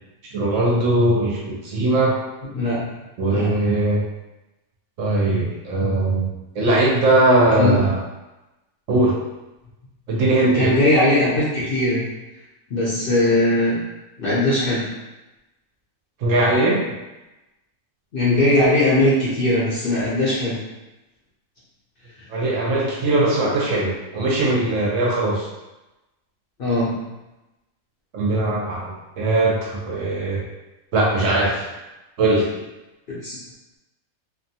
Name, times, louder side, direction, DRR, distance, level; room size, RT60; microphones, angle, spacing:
voice 1, 0.3-2.2 3.2-4.1 5.0-6.3 6.6-8.0 8.9-9.2 10.1-10.7 16.2-16.8 22.3-25.5 28.1-30.4 30.9-31.7 32.2-32.5, right 2 dB, 70° right, -3 dB, 0.9 m, -20 dB
voice 2, 10.5-12.0 12.7-13.8 14.2-14.9 18.1-20.6 26.6-27.0 33.1-33.4, left 1 dB, 55° left, -8 dB, 0.7 m, -19 dB
2.7 x 2.2 x 2.7 m, 1.0 s
omnidirectional pair, 1.5 m